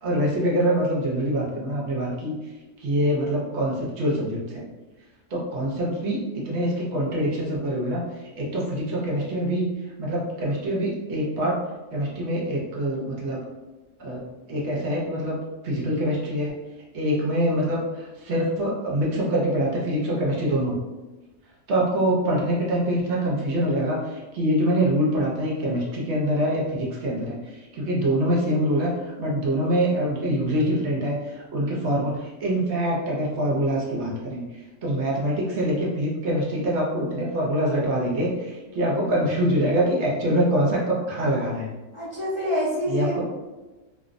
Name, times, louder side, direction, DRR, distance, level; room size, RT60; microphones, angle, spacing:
voice 1, 0.0-2.3 2.8-4.7 5.3-8.0 8.4-9.7 10.0-11.6 11.9-13.4 14.0-14.2 14.5-15.4 15.6-16.6 16.9-20.8 21.7-34.4 34.8-41.7 42.9-43.2, right 1 dB, 65° right, -4 dB, 0.8 m, -25 dB
voice 2, 41.9-43.2, left 1 dB, 55° left, -9 dB, 0.3 m, -26 dB
2.5 x 2.0 x 2.4 m, 1.1 s
omnidirectional pair, 1.4 m